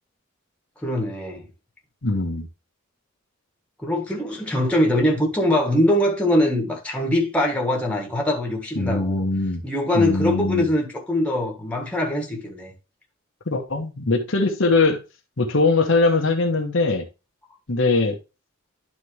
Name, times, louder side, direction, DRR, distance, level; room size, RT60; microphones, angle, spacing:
voice 1, 0.8-1.4 3.8-9.3 9.6-12.7, left 1 dB, 5° left, 1.6 m, -22 dB
voice 2, 2.0-2.5 8.8-9.6 9.9-10.7 13.5-15.0 15.4-17.0 17.7-18.2, left 3 dB, 65° left, 1.1 m, -21 dB
11.0 x 4.2 x 3.1 m
head